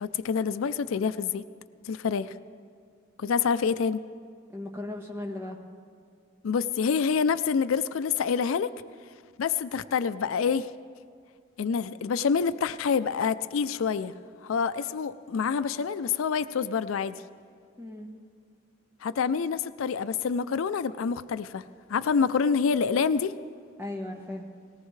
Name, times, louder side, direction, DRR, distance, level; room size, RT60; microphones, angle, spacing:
voice 1, 0.0-1.4 1.9-2.3 3.2-4.0 6.4-8.7 9.4-10.7 11.6-14.1 14.4-17.2 19.0-21.6 21.9-23.4, left 6 dB, 80° left, 14 dB, 0.4 m, -27 dB
voice 2, 4.5-5.6 17.8-18.1 23.8-24.5, left 1 dB, 10° right, 1 dB, 1.3 m, -36 dB
19.0 x 18.0 x 3.2 m, 2.1 s
head